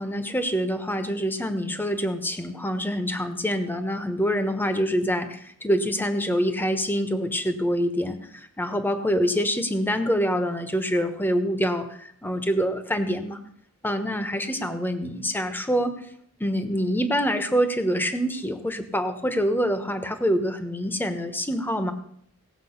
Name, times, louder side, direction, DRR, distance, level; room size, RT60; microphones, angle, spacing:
voice 1, 0.0-13.4 13.8-15.9 16.4-21.9, equal, 10° left, 8 dB, 1.1 m, -26 dB
17.5 x 7.4 x 5.8 m, 0.68 s
head